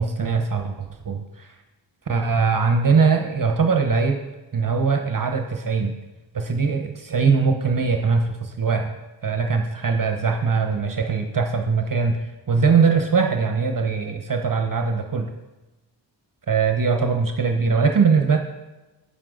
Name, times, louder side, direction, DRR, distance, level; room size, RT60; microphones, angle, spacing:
voice 1, 0.0-1.5 2.1-4.2 4.5-5.9 6.3-8.9 9.2-12.2 12.5-15.3 16.5-18.4, right 5 dB, 45° right, 5 dB, 1.0 m, -21 dB
9.2 x 8.6 x 3.8 m, 1.1 s
cardioid pair, 60°, 46 cm